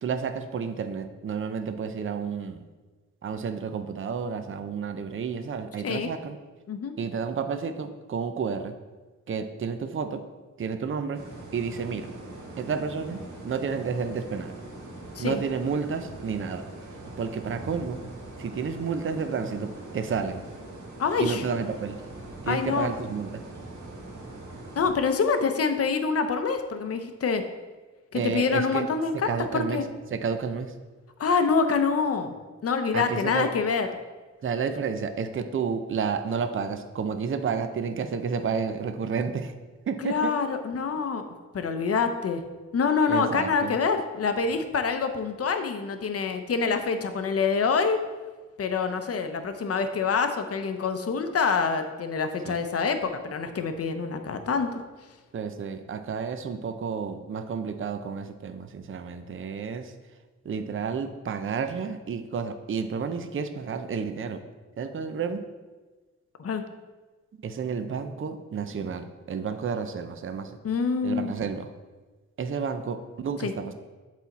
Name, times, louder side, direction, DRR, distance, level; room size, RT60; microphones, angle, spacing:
voice 1, 0.0-2.6 3.2-6.4 7.0-8.7 9.3-10.2 10.6-11.2 11.5-12.1 12.6-14.6 15.2-16.6 17.2-18.0 18.4-20.4 21.2-22.0 22.4-23.4 28.1-28.8 29.3-29.8 30.1-30.7 32.9-33.5 34.4-39.5 39.9-40.3 43.1-43.7 52.4-52.6 55.3-59.9 60.4-64.4 64.8-65.4 67.4-70.6 71.0-71.7 72.4-73.7, right 6 dB, 45° right, 8 dB, 0.5 m, -31 dB
voice 2, 5.8-6.1 6.7-6.9 15.2-15.4 21.0-21.4 22.5-22.9 24.8-27.4 28.1-29.8 31.2-32.3 32.6-33.9 40.0-41.2 41.5-42.4 42.7-48.0 48.6-54.7 66.4-66.6 70.6-71.3 73.4-73.5, left 5 dB, 55° left, 8 dB, 0.6 m, -26 dB
sound 1, 11.1-24.9, right 2 dB, 80° right, 1.5 m, -42 dB
8.1 x 4.1 x 4.1 m, 1.3 s
wide cardioid pair, 95°, 29 cm